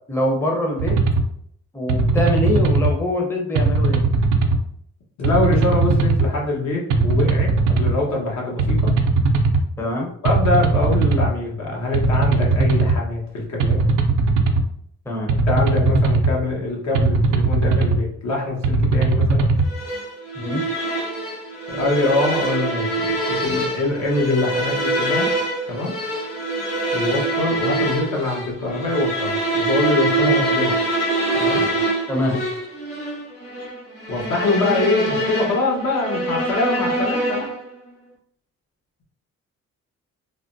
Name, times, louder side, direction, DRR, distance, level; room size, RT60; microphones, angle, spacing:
voice 1, 0.1-1.0 1.7-4.0 9.8-10.1 15.1-15.3 20.4-20.6 31.5-31.6 32.1-32.4, left 1 dB, 10° left, -1 dB, 0.6 m, -23 dB
sound 1, 0.8-1.2 1.9-2.9 3.6-4.6 5.2-6.3 6.9-7.9 8.6-9.6 10.3-11.3 11.9-13.0 13.6-14.6 15.3-16.3 17.0-18.0 18.6-19.7, right 3 dB, 75° right, 0.5 m, -18 dB
voice 2, 5.2-8.9 10.2-13.8 15.5-19.5 21.7-25.3 25.7-26.0 26.9-30.7 31.3-31.7 34.1-37.5, left 2 dB, 65° left, -2 dB, 1.1 m, -24 dB
sound 2, 19.7-37.7, right 1 dB, 45° left, 1.4 m, -24 dB
3.4 x 2.1 x 2.6 m, 0.67 s
cardioid pair, 90°, 30 cm